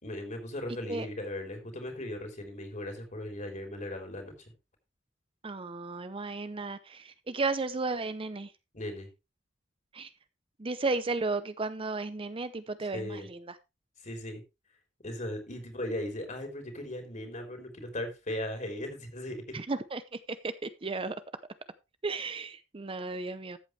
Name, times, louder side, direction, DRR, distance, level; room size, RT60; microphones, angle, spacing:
voice 1, 0.0-4.5 8.7-9.1 12.9-13.3 14.0-14.4 15.0-19.6, left 1 dB, 40° left, 3.8 m, -38 dB
voice 2, 5.4-8.5 9.9-10.1 10.6-13.6 19.5-21.2 22.0-23.6, right 3 dB, 30° right, 0.6 m, -34 dB
14.0 x 8.0 x 3.3 m
head